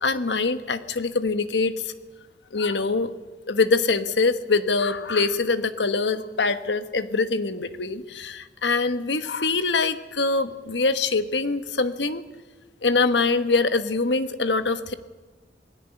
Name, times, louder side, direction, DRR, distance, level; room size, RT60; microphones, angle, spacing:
voice 1, 0.0-1.9 2.5-3.1 3.5-12.2 12.8-14.9, left 3 dB, 85° left, 11 dB, 1.3 m, -24 dB
20.0 x 16.5 x 10.0 m, 1.2 s
head